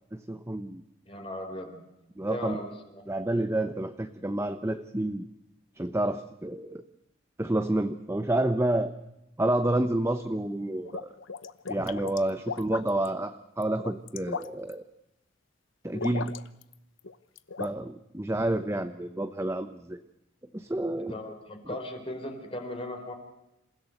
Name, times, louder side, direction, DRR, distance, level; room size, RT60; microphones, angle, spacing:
voice 1, 0.1-0.8 2.2-2.6 3.1-5.2 5.8-6.8 7.4-8.9 9.4-11.1 11.7-14.8 15.8-16.3 17.6-20.0 20.5-21.2, right 1 dB, 15° right, 9 dB, 0.9 m, -29 dB
voice 2, 1.1-1.8 2.3-3.0 21.0-23.1, left 1 dB, 30° left, 4 dB, 4.2 m, -37 dB
sound 1, 10.6-13.1 13.6-14.7 15.9-16.7 17.0-17.7, left 5 dB, 75° left, 1.0 m, -37 dB
27.5 x 16.0 x 7.9 m, 0.91 s
head